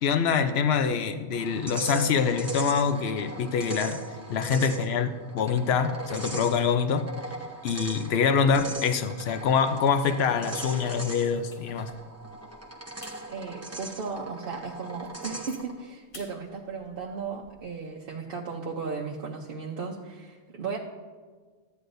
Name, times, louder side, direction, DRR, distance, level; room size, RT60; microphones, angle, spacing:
voice 1, 0.0-4.0 4.3-7.0 7.6-11.9, left 6 dB, 65° left, 9 dB, 0.9 m, -25 dB
sound 1, 1.3-15.8, right 2 dB, 15° right, 0.9 m, -39 dB
sound 2, 8.1-8.8 9.2-9.4 10.0-12.0 12.5-12.6 13.0-13.2 13.7-13.8 14.3-14.4 14.8-15.6 16.1-16.3 16.7-17.6, left 2 dB, 50° left, 1.8 m, -46 dB
voice 2, 13.3-20.8, right 5 dB, 55° right, -2 dB, 0.9 m, -36 dB
14.0 x 9.5 x 2.6 m, 1.5 s
omnidirectional pair, 1.2 m